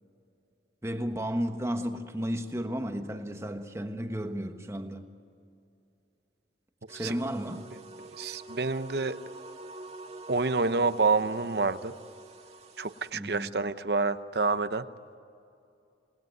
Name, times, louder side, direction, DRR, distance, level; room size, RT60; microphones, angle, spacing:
voice 1, 0.8-5.1 6.9-7.7 13.1-13.5, equal, 15° right, 1.3 m, -33 dB
sound 1, 6.9-13.1, right 2 dB, 35° right, 2.0 m, -47 dB
voice 2, 8.2-9.2 10.3-11.9 12.8-14.9, right 3 dB, 60° right, 0.8 m, -28 dB
28.0 x 19.5 x 9.4 m
head